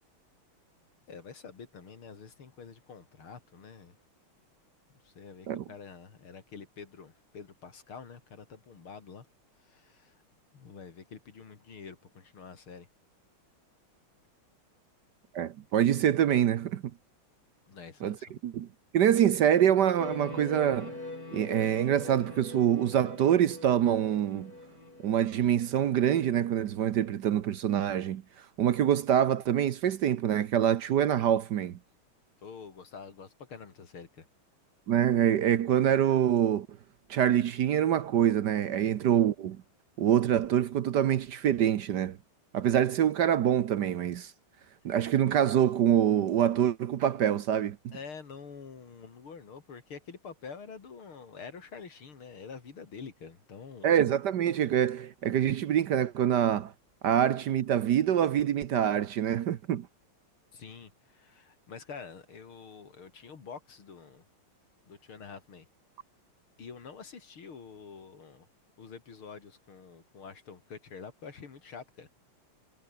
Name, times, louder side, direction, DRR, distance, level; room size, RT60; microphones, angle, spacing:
voice 1, 1.1-4.0 5.0-9.3 9.6-10.1 10.5-12.9 17.7-18.3 32.4-34.3 47.9-53.9 60.5-64.3 64.9-65.7 66.6-68.5 68.8-72.1, left 5 dB, 80° left, 3.7 m, -47 dB
voice 2, 15.3-16.8 18.0-18.2 18.4-18.7 18.9-21.0 21.3-24.5 25.0-28.2 28.6-31.8 34.9-36.7 37.1-39.6 40.0-42.2 42.5-44.3 44.8-47.9 53.8-56.7 57.0-59.9, right 10 dB, 60° right, 1.3 m, -25 dB
sound 1, 20.0-26.7, left 2 dB, 45° left, 6.8 m, -44 dB
omnidirectional pair, 2.3 m